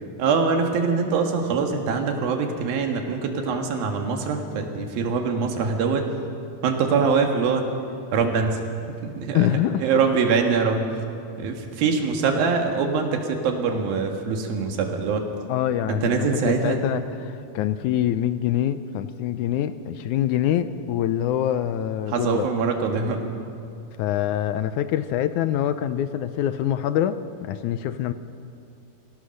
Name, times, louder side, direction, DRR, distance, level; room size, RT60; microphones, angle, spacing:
voice 1, 0.2-6.1 6.6-7.7 8.1-8.6 9.0-9.5 9.8-10.9 11.4-15.2 15.9-16.8 22.1-23.2, right 5 dB, 85° right, 3 dB, 3.5 m, -23 dB
voice 2, 9.3-9.8 15.5-22.5 24.0-28.1, left 11 dB, 80° left, 11 dB, 1.8 m, -25 dB
25.5 x 16.5 x 6.5 m, 2.6 s
omnidirectional pair, 4.1 m